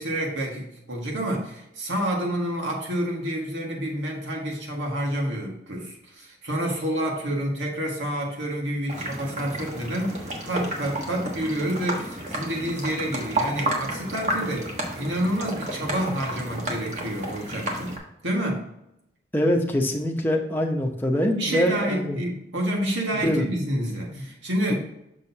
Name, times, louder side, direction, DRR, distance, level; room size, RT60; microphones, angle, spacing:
voice 1, 0.0-17.9 18.2-18.7 21.4-24.7, right 1 dB, 90° right, -1 dB, 1.8 m, -28 dB
sound 1, 8.9-18.0, right 1 dB, 40° right, 1.3 m, -31 dB
voice 2, 19.3-22.2 23.2-23.4 24.1-24.2, equal, 10° left, 1 dB, 0.8 m, -24 dB
6.5 x 6.3 x 2.8 m, 0.82 s
head